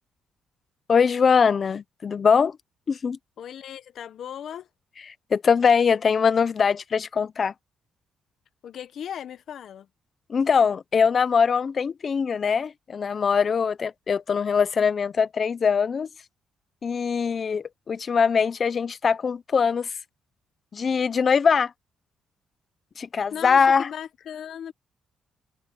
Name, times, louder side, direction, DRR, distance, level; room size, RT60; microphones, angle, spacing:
voice 1, 0.9-2.6 2.9-3.2 5.3-7.5 10.3-16.1 16.8-19.9 20.7-21.7 23.0-23.9, left 6 dB, 40° left, 0.7 m, -22 dB
voice 2, 3.4-4.7 8.6-9.9 23.3-24.7, left 9 dB, 65° left, 1.2 m, -37 dB
cardioid pair, 115°, 0 cm